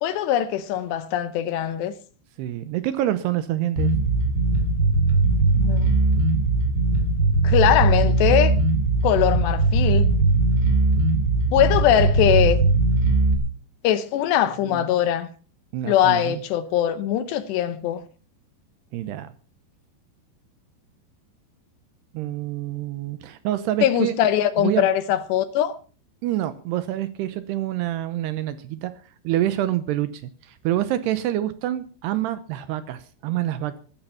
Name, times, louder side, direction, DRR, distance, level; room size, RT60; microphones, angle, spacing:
voice 1, 0.0-1.9 5.6-6.0 7.4-8.5 9.0-10.1 11.5-12.6 13.8-15.3 15.8-18.0 23.8-25.8, left 11 dB, 75° left, 2.8 m, -21 dB
voice 2, 2.4-3.9 14.6-14.8 15.7-16.4 18.9-19.3 22.1-24.2 24.6-24.9 26.2-28.9 29.2-33.8, right 13 dB, 75° right, 2.6 m, -27 dB
Bass guitar, 3.7-13.3, right 3 dB, 25° right, 2.7 m, -20 dB
15.0 x 13.5 x 5.6 m
omnidirectional pair, 5.4 m